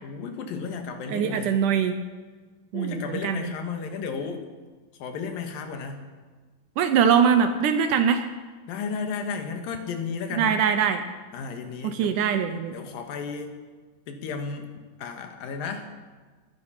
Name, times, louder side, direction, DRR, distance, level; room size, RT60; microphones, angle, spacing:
voice 1, 0.0-1.6 2.7-4.4 5.0-6.1 8.7-10.6 11.3-12.2 12.7-13.6 14.1-14.7 15.0-15.9, left 5 dB, 80° left, 5 dB, 3.1 m, -33 dB
voice 2, 1.1-2.0 2.7-3.5 6.8-8.2 10.4-11.0 11.8-12.7, right 7 dB, 75° right, 8 dB, 2.0 m, -22 dB
21.0 x 10.0 x 5.7 m, 1.4 s
omnidirectional pair, 4.2 m